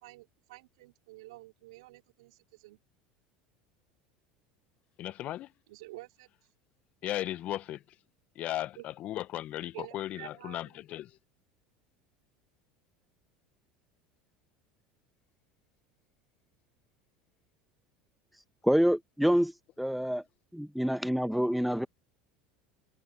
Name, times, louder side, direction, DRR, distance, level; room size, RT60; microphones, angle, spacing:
voice 1, 0.0-2.8 5.7-6.3 8.8-8.9 9.7-10.6, right 20 dB, 75° right, 3.5 m, -49 dB
voice 2, 5.0-5.5 7.0-7.8 8.3-11.2, left 14 dB, 50° left, 1.0 m, -36 dB
voice 3, 18.6-19.5 19.8-20.2 20.5-21.9, equal, ahead, 1.2 m, -26 dB
hypercardioid pair, 80°, 3 cm